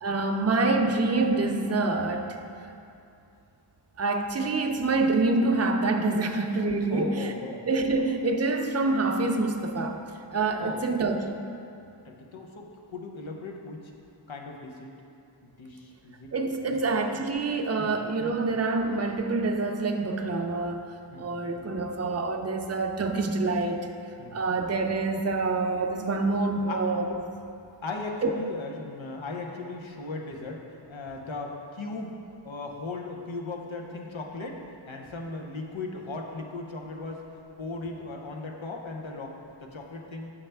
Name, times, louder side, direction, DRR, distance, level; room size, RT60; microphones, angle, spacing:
voice 1, 0.0-2.3 4.0-7.3 7.7-10.0 10.3-11.4 16.3-20.9 21.2-23.9 24.3-27.2 28.2-28.3, right 3 dB, 35° right, 4 dB, 0.5 m, -26 dB
voice 2, 6.9-7.6 10.6-10.8 12.0-13.9 14.3-14.9 15.4-16.3 16.7-16.8 17.8-17.9 21.1-21.5 24.2-24.6 26.7-26.8 27.8-30.6 30.9-32.2 32.4-34.6 34.9-37.2 37.6-40.3, left 3 dB, 85° left, 1 dB, 0.8 m, -37 dB
7.2 x 5.6 x 3.4 m, 2.5 s
wide cardioid pair, 40°, 45 cm